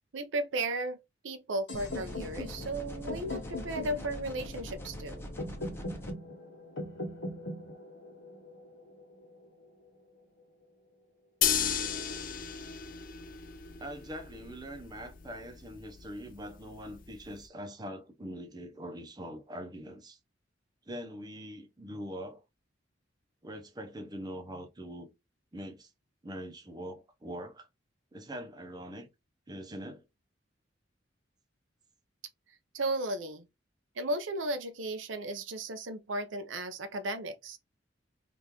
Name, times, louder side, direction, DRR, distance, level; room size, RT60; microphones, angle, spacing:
voice 1, 0.1-1.0 1.2-5.2 29.7-29.9 32.7-33.5 34.0-37.6, right 2 dB, 85° right, 0.6 m, -35 dB
sound 1, 1.7-9.6, left 1 dB, 90° left, 1.2 m, -41 dB
sound 2, 1.7-6.1, equal, 15° left, 0.8 m, -43 dB
sound 3, 11.4-17.4, left 8 dB, 45° left, 0.5 m, -35 dB
voice 2, 13.8-20.2 20.9-22.4 23.4-25.1 25.5-25.9 26.2-27.7 28.1-29.1 29.5-30.0, equal, 20° right, 0.7 m, -43 dB
3.6 x 2.4 x 2.9 m
head